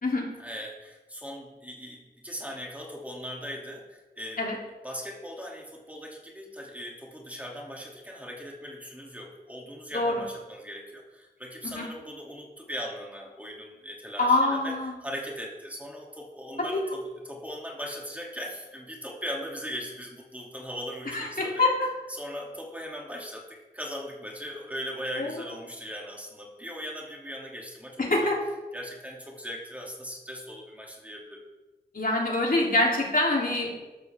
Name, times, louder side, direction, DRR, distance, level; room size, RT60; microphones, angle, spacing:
voice 1, 0.4-4.4 4.8-21.6 22.1-28.1 28.7-31.4, equal, 10° right, -2 dB, 2.8 m, -39 dB
voice 2, 14.2-14.9 21.1-21.9 25.2-25.3 28.0-28.4 31.9-33.8, left 2 dB, 60° left, -2 dB, 3.3 m, -25 dB
13.0 x 13.0 x 3.6 m, 1.2 s
wide cardioid pair, 70°, 17 cm